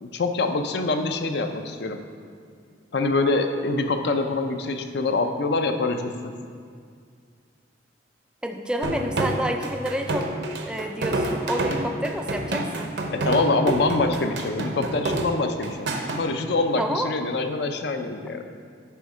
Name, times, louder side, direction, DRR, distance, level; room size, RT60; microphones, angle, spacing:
voice 1, 0.0-2.0 2.9-6.1 13.1-15.9 16.2-18.4, left 3 dB, 60° left, 7 dB, 0.5 m, -25 dB
voice 2, 8.4-10.3 10.7-12.9 16.8-17.1, equal, 5° right, 4 dB, 0.3 m, -29 dB
sound 1, 8.8-16.2, right 2 dB, 65° right, 0.6 m, -28 dB
9.4 x 3.6 x 4.8 m, 2.1 s
head